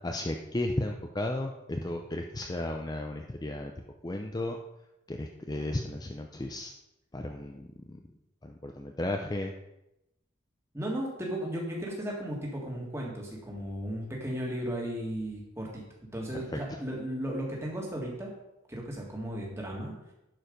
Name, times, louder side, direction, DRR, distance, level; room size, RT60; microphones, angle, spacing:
voice 1, 0.0-3.7 4.0-4.6 5.1-6.7 7.1-8.0 8.4-9.5 16.5-16.8, left 1 dB, 20° left, 3 dB, 0.5 m, -34 dB
voice 2, 10.7-15.8 16.1-18.3 18.7-19.9, equal, 15° right, -2 dB, 1.9 m, -35 dB
11.0 x 4.8 x 5.2 m, 0.90 s
head